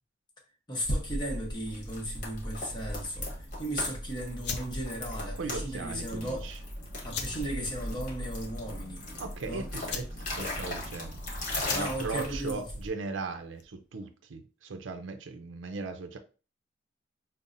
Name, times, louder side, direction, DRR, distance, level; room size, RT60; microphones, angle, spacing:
voice 1, 0.7-6.5 7.0-9.0 9.5-9.7 11.6-12.7, right 1 dB, 25° left, 1.0 m, -36 dB
sound 1, 0.8-12.9, left 1 dB, 40° left, 1.1 m, -37 dB
sound 2, 4.4-13.9, left 6 dB, 60° left, 0.4 m, -43 dB
voice 2, 5.4-6.6 9.2-11.2 11.7-16.2, right 4 dB, 80° right, 0.5 m, -38 dB
5.4 x 2.0 x 2.5 m
head